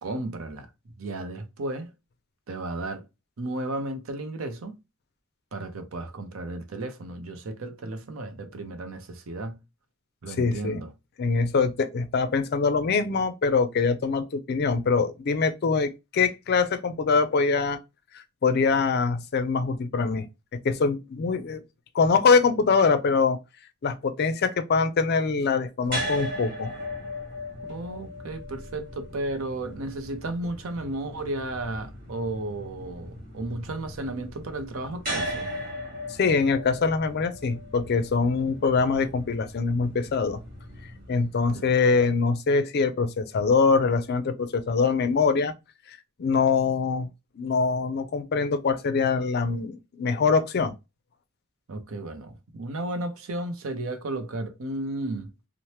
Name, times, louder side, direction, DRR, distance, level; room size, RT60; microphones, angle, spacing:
voice 1, 0.0-0.7 1.0-1.9 2.5-3.1 3.4-4.8 5.5-9.6 10.2-10.9 27.6-35.5 41.5-41.7 51.7-55.3, right 2 dB, 75° right, 0.6 m, -34 dB
voice 2, 10.4-10.8 11.2-17.8 18.1-20.3 20.6-21.6 21.9-23.4 23.8-26.7 36.2-40.4 41.1-45.5 45.9-47.1 47.4-50.7, left 4 dB, 50° left, 0.4 m, -24 dB
sound 1, 25.9-42.0, equal, 40° right, 1.4 m, -38 dB
2.8 x 2.0 x 3.1 m
head